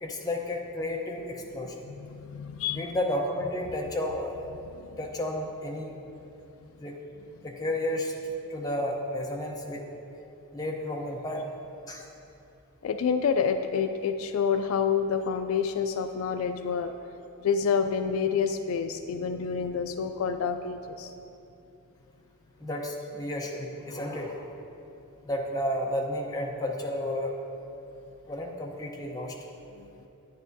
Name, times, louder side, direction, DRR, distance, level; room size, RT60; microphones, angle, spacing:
voice 1, 0.0-1.8 2.7-4.4 5.0-5.9 6.8-7.0 7.4-8.1 8.5-9.8 10.5-11.5 11.9-12.1 22.6-24.6 25.2-27.3 28.3-29.4, left 1 dB, 15° left, -1 dB, 0.7 m, -32 dB
voice 2, 1.9-2.9 4.8-4.9 12.8-16.9 17.4-21.1 29.8-29.9, left 6 dB, 65° left, 8 dB, 0.3 m, -28 dB
9.8 x 9.4 x 2.7 m, 2.8 s
head